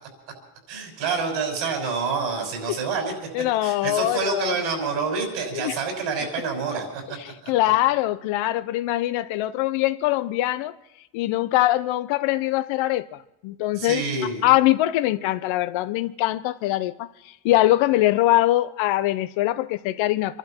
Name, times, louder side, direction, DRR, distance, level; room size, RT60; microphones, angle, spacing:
voice 1, 0.7-3.1 3.6-7.0 7.4-7.5 13.7-14.4, right 4 dB, 80° right, 5.9 m, -27 dB
voice 2, 3.3-4.5 5.6-5.8 7.2-10.8 11.1-14.0 14.4-17.1 17.4-20.4, left 15 dB, 90° left, 0.8 m, -22 dB
27.0 x 12.0 x 4.4 m
cardioid pair, 180°, 45 cm